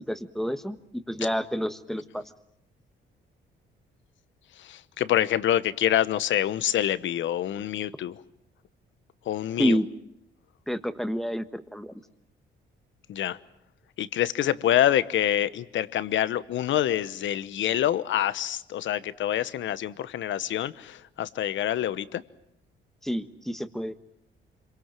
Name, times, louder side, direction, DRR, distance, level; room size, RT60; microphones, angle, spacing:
voice 1, 0.0-2.2 9.6-9.9 10.7-11.9 23.0-24.0, equal, ahead, 10 dB, 1.4 m, -29 dB
voice 2, 4.6-8.2 9.3-9.8 13.1-13.4 14.0-22.2, left 11 dB, 70° left, 15 dB, 1.0 m, -26 dB
26.5 x 23.5 x 7.6 m, 0.78 s
cardioid pair, 90°, 20 cm